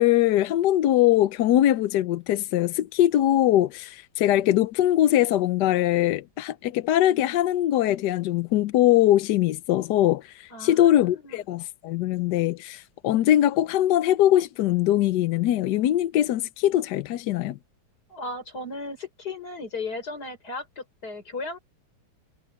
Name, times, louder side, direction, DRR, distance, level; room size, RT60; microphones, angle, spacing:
voice 1, 0.0-17.6, left 13 dB, 70° left, 1.1 m, -22 dB
voice 2, 10.5-11.4 18.1-21.6, left 3 dB, 50° left, 5.8 m, -36 dB
omnidirectional pair, 2.2 m